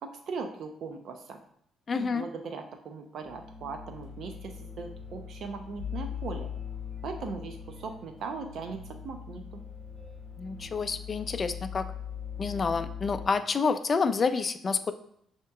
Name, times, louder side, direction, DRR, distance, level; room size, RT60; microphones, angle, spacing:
voice 1, 0.0-1.4 1.9-6.5 7.0-9.6, right 4 dB, 65° right, 5 dB, 0.4 m, -39 dB
voice 2, 1.9-2.3 10.4-11.9 12.4-14.9, left 5 dB, 40° left, 11 dB, 0.3 m, -28 dB
sound 1, 3.2-13.3, left 7 dB, 5° right, 1.3 m, -41 dB
6.2 x 2.8 x 2.3 m, 0.70 s
cardioid pair, 90°, 0 cm